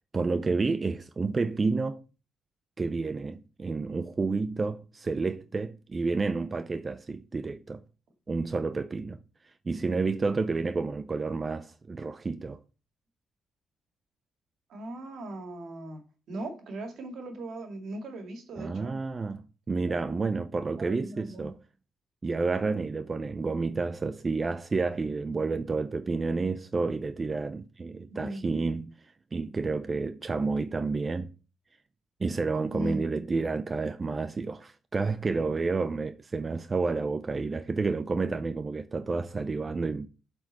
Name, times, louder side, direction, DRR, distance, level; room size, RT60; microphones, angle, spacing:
voice 1, 0.1-2.0 2.8-7.8 8.3-12.6 18.6-21.6 22.2-31.3 32.2-40.1, right 4 dB, 30° right, 0.4 m, -30 dB
voice 2, 14.7-16.0 16.3-19.0 19.7-20.2 20.8-21.5 28.1-28.4 32.7-33.0, right 1 dB, 65° right, 2.0 m, -38 dB
7.7 x 4.3 x 4.2 m
cardioid pair, 90°, 0 cm